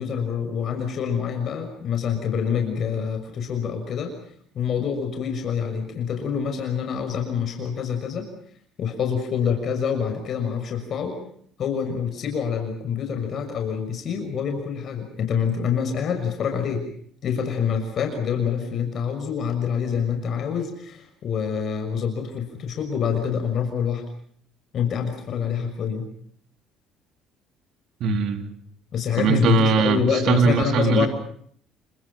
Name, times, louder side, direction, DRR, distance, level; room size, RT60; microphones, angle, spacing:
voice 1, 0.0-4.1 4.5-8.3 8.8-11.2 11.6-16.8 17.2-24.0 24.7-26.1 28.9-31.1, left 7 dB, 50° left, 5 dB, 6.4 m, -26 dB
voice 2, 28.0-28.6 29.2-31.1, right 4 dB, 60° right, 7 dB, 3.7 m, -20 dB
29.5 x 26.0 x 5.6 m, 0.62 s
cardioid pair, 115°, 0 cm